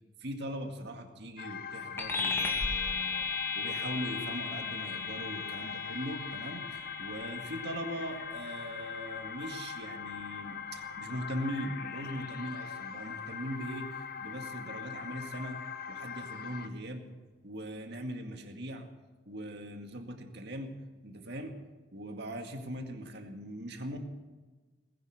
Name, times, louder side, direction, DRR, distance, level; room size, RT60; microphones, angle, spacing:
voice 1, 0.2-15.6 15.9-17.1 17.4-18.9 19.3-20.7 21.0-21.5 21.9-24.0, equal, 60° right, 4 dB, 2.1 m, -40 dB
sound 1, 1.4-16.7, left 7 dB, 50° left, 1.0 m, -42 dB
sound 2, 2.0-11.8, left 4 dB, 10° left, 2.3 m, -37 dB
19.5 x 11.0 x 6.6 m, 1.3 s
head